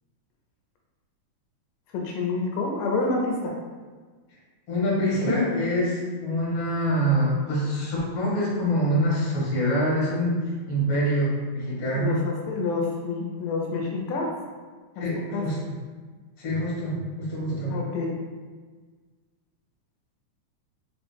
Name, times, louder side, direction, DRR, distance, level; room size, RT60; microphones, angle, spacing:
voice 1, 1.9-3.6 11.9-14.3 15.0-15.1 15.3-15.5 17.7-18.1, left 3 dB, 85° left, 0 dB, 2.3 m, -28 dB
voice 2, 4.7-12.2 15.0-15.6 16.4-17.8, equal, 55° left, -7 dB, 2.5 m, -25 dB
5.0 x 3.1 x 3.3 m, 1.4 s
omnidirectional pair, 3.8 m